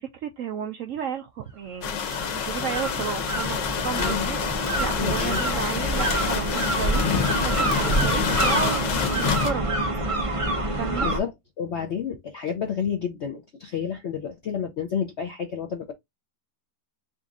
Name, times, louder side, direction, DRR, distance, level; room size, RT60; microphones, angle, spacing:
voice 1, 0.0-2.0 2.3-4.4 4.8-7.0 7.4-9.7 10.8-11.1, right 8 dB, 75° right, 0.7 m, -32 dB
sound 1, 1.8-9.5, left 8 dB, 90° left, 1.5 m, -27 dB
sound 2, 1.8-11.2, right 2 dB, 35° right, 0.5 m, -27 dB
voice 2, 4.0-4.3 5.0-5.4 10.7-11.3 11.6-15.9, left 7 dB, 70° left, 0.6 m, -30 dB
4.0 x 2.6 x 3.5 m
omnidirectional pair, 1.9 m